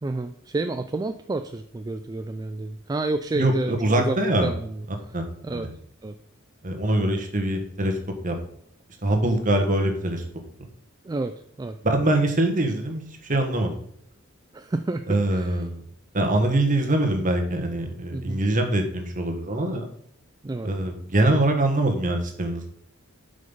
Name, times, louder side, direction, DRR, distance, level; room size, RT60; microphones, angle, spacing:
voice 1, 0.0-5.2 5.4-5.7 6.0-6.2 11.0-11.8 14.5-15.6 18.1-18.4 20.4-20.7, right 2 dB, 20° right, 8 dB, 0.3 m, -30 dB
voice 2, 3.4-4.5 5.1-5.7 6.6-8.0 8.2-8.4 9.0-10.2 11.8-13.7 15.1-15.8 16.1-19.8 20.6-22.7, right 1 dB, 40° right, 4 dB, 1.4 m, -23 dB
7.7 x 5.3 x 5.4 m, 0.69 s
head